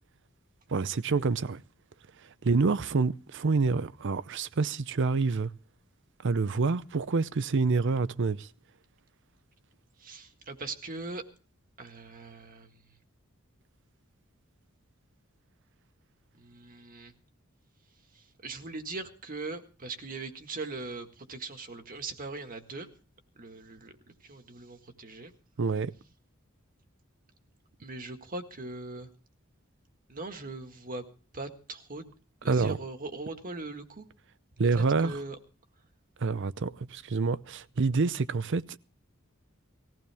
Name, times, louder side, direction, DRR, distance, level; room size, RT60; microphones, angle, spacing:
voice 1, 0.7-1.6 2.4-5.5 6.2-8.5 25.6-25.9 32.5-32.8 34.6-35.2 36.2-38.8, right 4 dB, 60° right, 0.6 m, -27 dB
voice 2, 10.0-11.2 11.8-12.8 16.4-17.1 18.2-22.9 23.4-23.9 24.2-25.3 27.8-29.1 30.1-31.0 31.3-32.1 32.4-34.0 34.8-35.4, right 3 dB, 45° right, 1.7 m, -40 dB
20.0 x 15.5 x 3.5 m
head